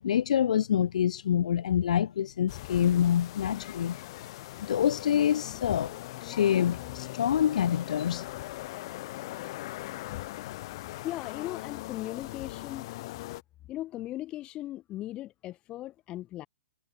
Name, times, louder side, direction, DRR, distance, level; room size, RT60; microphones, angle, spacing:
voice 1, 0.0-4.0 4.6-5.9 6.2-8.3, left 9 dB, 75° left, 0.3 m, -26 dB
sound 1, 2.5-13.4, left 18 dB, 45° left, 0.9 m, -40 dB
voice 2, 11.0-12.9 13.7-16.5, left 15 dB, 25° left, 1.1 m, -38 dB
hypercardioid pair, 145°, 4 cm